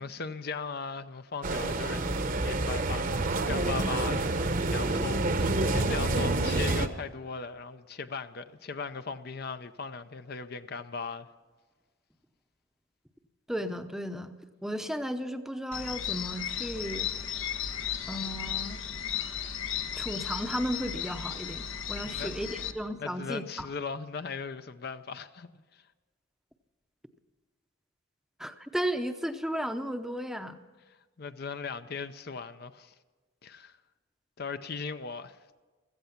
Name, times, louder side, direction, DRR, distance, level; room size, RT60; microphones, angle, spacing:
voice 1, 0.0-2.1 2.4-11.3 22.0-22.7 23.0-25.8 30.9-32.9 33.4-33.7 34.4-35.4, left 5 dB, 50° left, 0.6 m, -38 dB
sound 1, 1.4-6.9, right 2 dB, 40° right, 0.9 m, -28 dB
voice 2, 13.5-14.3 14.6-17.1 18.1-18.8 19.9-23.7 28.4-30.6, equal, ahead, 0.7 m, -34 dB
sound 2, 15.7-22.7, left 9 dB, 80° left, 1.1 m, -35 dB
16.0 x 14.5 x 5.8 m
head